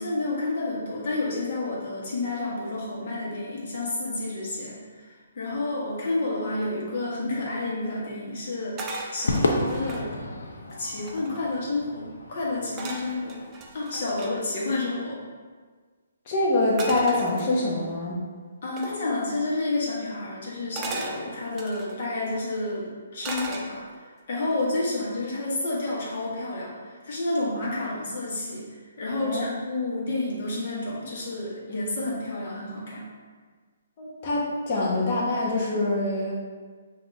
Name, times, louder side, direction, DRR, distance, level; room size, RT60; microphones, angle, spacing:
voice 1, 0.0-10.1 10.8-13.4 13.7-15.2 18.6-28.6 29.0-33.1, left 2 dB, 55° left, -5 dB, 1.4 m, -30 dB
sound 1, 8.8-10.1 10.7-10.8 10.9-11.6 12.8-14.3 16.8-17.9 18.8-19.0 20.8-22.0 23.2-24.1 24.5-24.9, right 2 dB, 20° right, 0.5 m, -37 dB
Crowd / Fireworks, 9.3-13.8, left 2 dB, 80° left, 0.6 m, -31 dB
voice 2, 16.3-18.2 29.2-29.4 34.0-36.3, left 2 dB, 40° left, -5 dB, 1.1 m, -25 dB
5.3 x 2.8 x 2.8 m, 1.5 s
hypercardioid pair, 145°, 0 cm